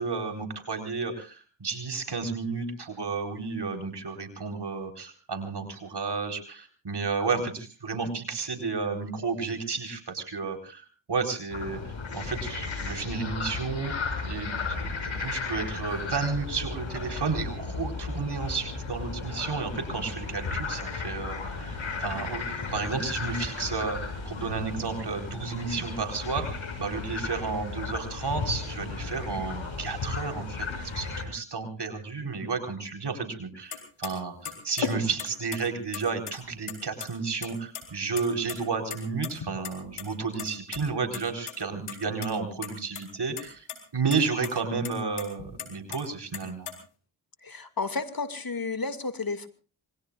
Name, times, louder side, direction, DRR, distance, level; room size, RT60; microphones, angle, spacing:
voice 1, 0.0-13.9 14.2-43.7 43.9-46.7, right 4 dB, 50° right, 5 dB, 4.3 m, -32 dB
sound 1, 11.5-31.2, left 4 dB, 65° left, 6.8 m, -35 dB
sound 2, 33.7-33.8 34.0-34.1 34.5-35.6 35.9-36.7 37.0-37.1 37.4-37.8 38.1-38.6 38.9-40.1 40.4-40.8 41.1-41.2 41.5-41.6 41.9-42.3 42.6-43.1 43.4-43.8 44.1-44.2 44.4-44.5 44.8-46.0 46.3-46.7, left 7 dB, 85° left, 4.2 m, -35 dB
voice 2, 47.4-49.5, left 4 dB, 45° left, 10 dB, 2.4 m, -32 dB
27.0 x 21.5 x 2.5 m, 0.36 s
cardioid pair, 55°, 50 cm